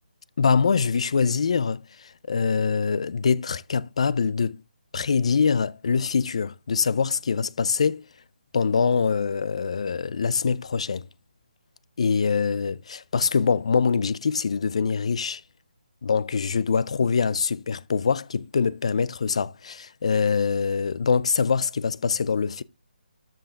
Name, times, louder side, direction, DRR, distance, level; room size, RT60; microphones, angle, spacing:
voice 1, 0.4-4.6 4.9-8.0 8.5-11.0 12.0-15.4 16.0-22.6, left 5 dB, 40° left, 0.4 m, -24 dB
13.0 x 5.6 x 3.6 m
hypercardioid pair, 175°, 5 cm